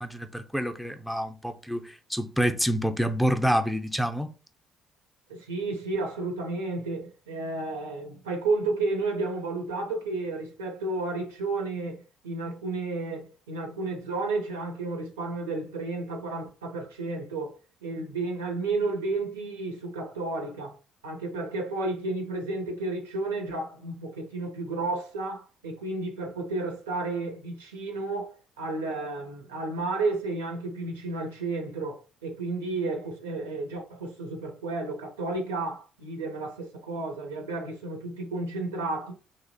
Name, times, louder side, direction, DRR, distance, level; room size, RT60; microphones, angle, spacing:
voice 1, 0.0-4.3, equal, ahead, 0.4 m, -27 dB
voice 2, 5.3-17.6 17.8-20.7 21.0-39.1, right 3 dB, 85° right, 0.5 m, -32 dB
2.6 x 2.0 x 2.6 m
hypercardioid pair, 50°, 0 cm